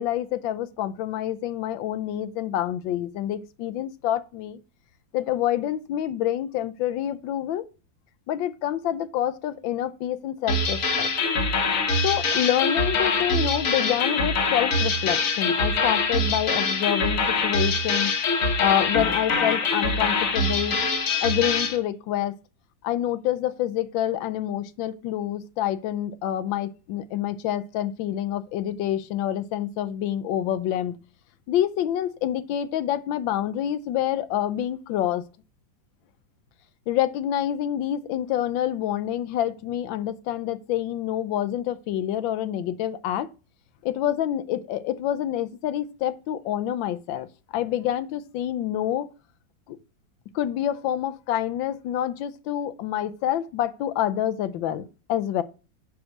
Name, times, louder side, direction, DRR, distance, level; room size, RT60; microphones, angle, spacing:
voice 1, 0.0-4.6 5.1-7.6 8.3-11.1 12.0-18.1 18.6-20.8 21.2-22.3 22.8-31.0 31.5-35.2 36.9-43.3 43.8-47.3 47.5-49.1 49.7-49.8 50.3-55.4, left 11 dB, 90° left, 1.4 m, -27 dB
sound 1, 10.5-21.8, left 3 dB, 50° left, 1.3 m, -24 dB
6.2 x 4.7 x 6.3 m
omnidirectional pair, 2.0 m